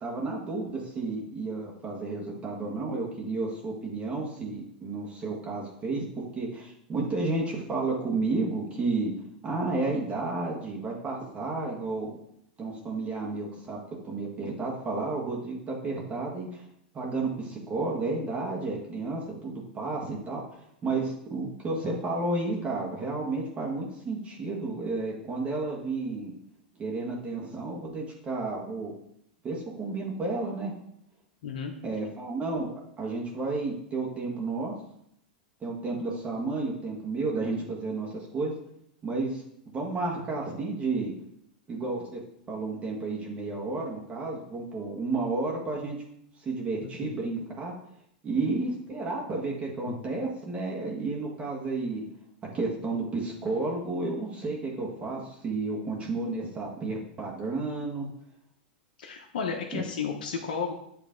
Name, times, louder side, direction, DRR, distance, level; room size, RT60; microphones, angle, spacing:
voice 1, 0.0-6.0 6.3-9.1 9.4-12.1 12.6-16.6 16.9-20.4 20.8-26.3 26.8-28.9 29.4-30.7 31.8-32.7 33.0-34.7 35.6-38.5 39.0-39.4 39.7-41.1 41.7-42.2 42.5-46.0 46.4-47.7 48.2-52.0 52.5-58.1 59.7-59.8, right 3 dB, 25° right, -2 dB, 1.5 m, -31 dB
voice 2, 31.4-31.7 47.0-47.1 49.9-50.0 59.0-60.7, left 6 dB, 70° left, 3 dB, 0.8 m, -33 dB
8.4 x 3.2 x 3.8 m, 0.73 s
hypercardioid pair, 115°, 5 cm